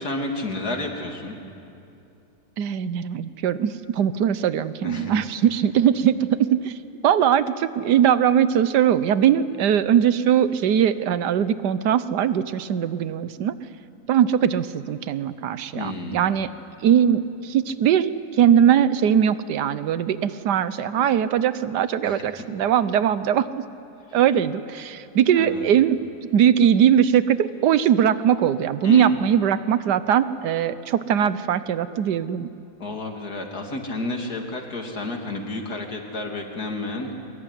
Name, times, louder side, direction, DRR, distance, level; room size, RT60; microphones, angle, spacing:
voice 1, 0.0-1.4 4.8-5.1 15.7-16.3 22.0-22.2 25.4-25.7 28.8-29.3 32.8-37.2, left 2 dB, 65° left, 2 dB, 3.3 m, -31 dB
voice 2, 2.6-6.7 7.0-13.5 14.1-16.5 16.8-18.1 18.4-23.5 24.1-26.0 26.3-32.5, right 9 dB, 80° right, 14 dB, 1.5 m, -20 dB
23.5 x 22.5 x 9.9 m, 2.6 s
omnidirectional pair, 1.8 m